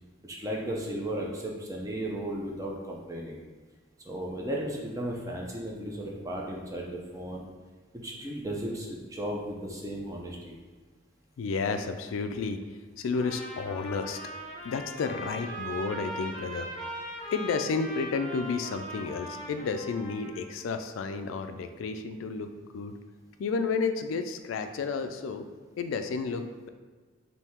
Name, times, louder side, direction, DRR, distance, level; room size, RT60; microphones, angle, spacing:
voice 1, 0.2-3.4 4.0-7.4 8.0-10.6, right 1 dB, 15° right, -2 dB, 0.5 m, -35 dB
voice 2, 11.4-14.2 14.6-16.9 17.3-23.0 23.4-25.5 25.8-26.7, left 4 dB, 80° left, 8 dB, 0.3 m, -32 dB
Trumpet, 13.1-20.5, equal, 30° left, 0.9 m, -40 dB
3.5 x 2.7 x 4.3 m, 1.4 s
head